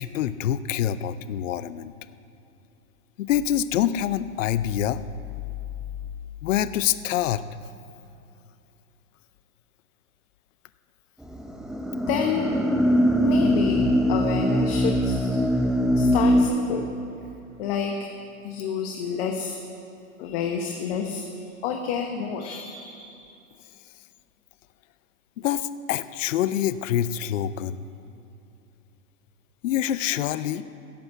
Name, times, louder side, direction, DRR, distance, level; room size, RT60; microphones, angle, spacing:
voice 1, 0.0-1.9 3.2-5.1 6.4-7.4 25.4-27.8 29.6-30.6, left 11 dB, 60° left, 14 dB, 0.6 m, -26 dB
sound 1, 11.2-16.4, equal, ahead, 0.6 m, -22 dB
voice 2, 12.1-12.5 13.2-13.8 14.1-15.4 15.9-16.9 17.6-17.9 18.4-19.6 20.2-21.2 21.6-23.2, left 7 dB, 45° left, 3 dB, 1.2 m, -29 dB
14.0 x 7.7 x 8.2 m, 2.7 s
hypercardioid pair, 125°, 43 cm